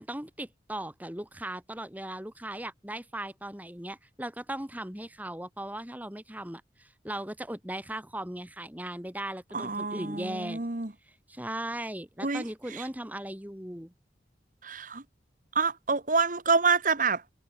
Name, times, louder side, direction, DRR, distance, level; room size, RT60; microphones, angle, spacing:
voice 1, 0.0-10.7 11.3-13.9, right 1 dB, 10° right, 2.4 m, -38 dB
voice 2, 9.5-10.9 12.2-12.4 12.7-12.9 14.6-15.0 15.5-17.2, right 4 dB, 50° right, 1.6 m, -27 dB
head